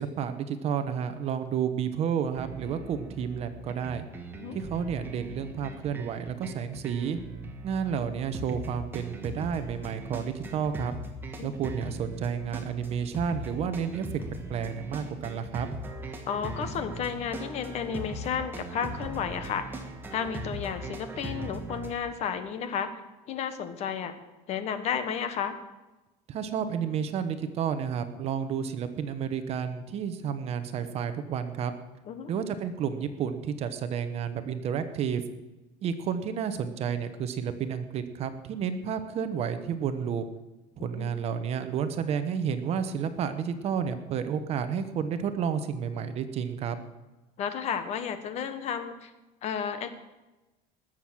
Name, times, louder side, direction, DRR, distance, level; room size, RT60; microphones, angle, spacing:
voice 1, 0.0-4.1 4.5-7.2 7.6-10.9 11.4-14.2 14.5-15.7 26.3-31.7 32.3-35.2 35.8-40.2 40.8-46.8, right 7 dB, 40° right, 10 dB, 1.1 m, -31 dB
sound 1, 2.3-21.9, right 2 dB, 15° right, 1.5 m, -39 dB
voice 2, 16.3-19.8 20.1-22.9 23.3-24.1 24.5-25.6 32.1-32.3 40.8-41.1 47.4-49.1 49.4-49.9, left 7 dB, 45° left, 10 dB, 1.3 m, -32 dB
19.0 x 7.6 x 6.3 m, 1.1 s
cardioid pair, 155°, 16 cm